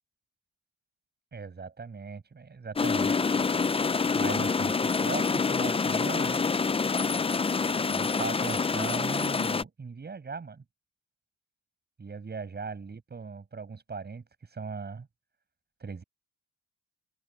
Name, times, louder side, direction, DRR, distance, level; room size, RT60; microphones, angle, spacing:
voice 1, 1.3-3.3 4.1-6.4 7.9-10.6 12.0-14.2 14.5-15.1 15.8-16.0, right 5 dB, 35° right, 7.5 m, -38 dB
sound 1, 2.8-9.6, left 4 dB, 20° left, 0.6 m, -27 dB
cardioid pair, 90°, 30 cm